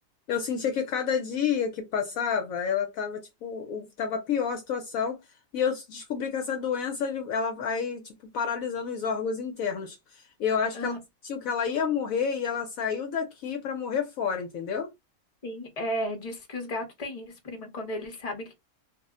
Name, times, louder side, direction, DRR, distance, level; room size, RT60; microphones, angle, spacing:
voice 1, 0.3-5.2 5.5-8.0 8.3-11.0 11.2-14.9, left 6 dB, 70° left, 0.9 m, -29 dB
voice 2, 15.4-18.5, left 1 dB, 30° left, 0.8 m, -34 dB
2.7 x 2.0 x 3.6 m
omnidirectional pair, 1.6 m